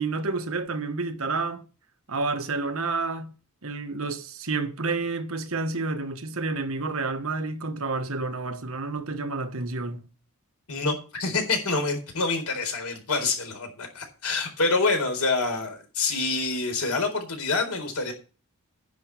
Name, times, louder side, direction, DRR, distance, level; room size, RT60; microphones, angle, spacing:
voice 1, 0.0-1.6 2.1-3.3 3.6-10.1, right 3 dB, 65° right, 1.4 m, -29 dB
voice 2, 10.7-18.1, left 3 dB, 85° left, 4.2 m, -27 dB
10.5 x 6.0 x 8.3 m
head